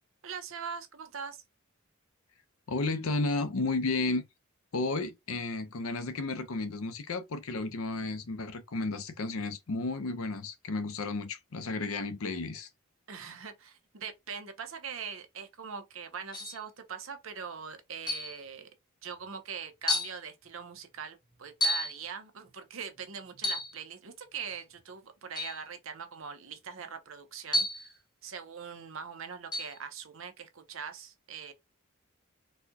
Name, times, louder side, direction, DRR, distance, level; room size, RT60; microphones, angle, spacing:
voice 1, 0.2-1.4 13.1-18.7 19.0-27.9 28.2-31.5, right 6 dB, 70° right, 0.7 m, -42 dB
voice 2, 2.7-4.2 4.7-12.7, left 3 dB, 80° left, 0.7 m, -33 dB
sound 1, 16.3-16.6 18.1-18.4 19.2-19.3 19.9-20.2 21.6-22.0 23.4-23.8 25.4-25.6 27.5-27.9 29.5-29.8, left 2 dB, 20° left, 0.8 m, -31 dB
4.2 x 2.3 x 2.7 m
head